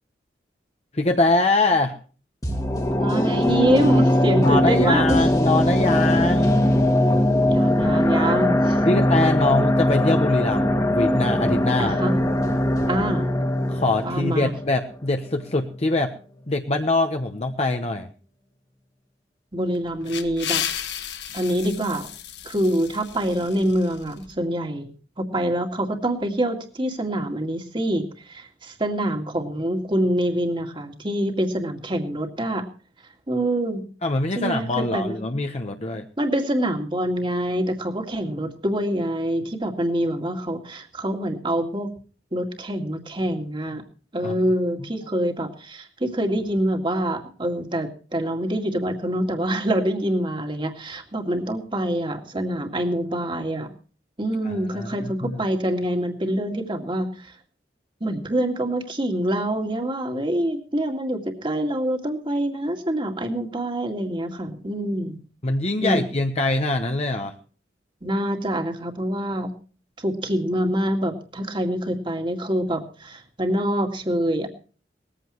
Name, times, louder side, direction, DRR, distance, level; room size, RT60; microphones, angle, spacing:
voice 1, 0.9-2.0 4.4-6.7 8.8-12.0 13.7-16.1 16.5-18.1 34.0-36.0 44.2-44.3 54.4-55.4 65.4-67.3, left 2 dB, 35° left, 4 dB, 1.0 m, -23 dB
sound 1, 2.4-15.5 15.8-15.9, left 1 dB, 20° left, 1.8 m, -21 dB
voice 2, 3.0-5.2 7.5-9.0 11.8-12.2 12.9-13.3 14.0-14.5 19.5-20.6 21.3-22.1 22.5-32.7 33.3-33.8 34.4-35.2 36.2-41.9 42.3-43.8 44.1-53.7 54.2-57.3 58.0-65.2 65.8-66.0 68.0-69.5 70.0-74.5, right 1 dB, 30° right, 4 dB, 2.1 m, -25 dB
sound 2, 19.7-24.3, left 9 dB, 80° left, 1.6 m, -33 dB
19.5 x 15.0 x 3.1 m, 0.39 s
head